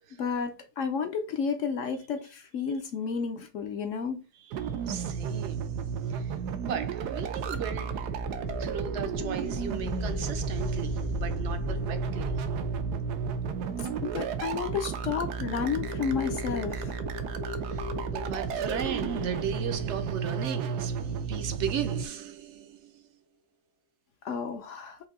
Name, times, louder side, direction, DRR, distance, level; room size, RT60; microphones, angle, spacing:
voice 1, 0.2-4.2 13.8-17.0 24.2-25.0, left 6 dB, 65° left, 0.8 m, -32 dB
voice 2, 4.4-12.4 17.6-23.0, right 8 dB, 60° right, 0.8 m, -37 dB
sound 1, 4.5-22.1, right 6 dB, 85° right, 1.2 m, -33 dB
sound 2, 6.8-21.9, left 3 dB, 25° left, 0.5 m, -39 dB
5.4 x 2.6 x 3.7 m
omnidirectional pair, 1.7 m